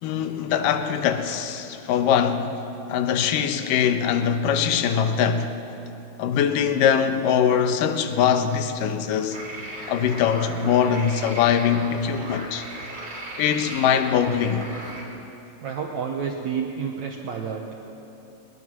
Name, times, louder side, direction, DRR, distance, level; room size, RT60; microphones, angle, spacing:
voice 1, 0.0-2.5 2.9-5.5 6.2-9.4 9.9-12.7 13.4-14.7, left 8 dB, 70° left, 2.2 m, -22 dB
sound 1, 9.3-15.0, right 1 dB, 25° right, 4.0 m, -37 dB
voice 2, 15.6-17.6, right 6 dB, 70° right, 1.7 m, -29 dB
23.5 x 20.5 x 6.2 m
omnidirectional pair, 4.8 m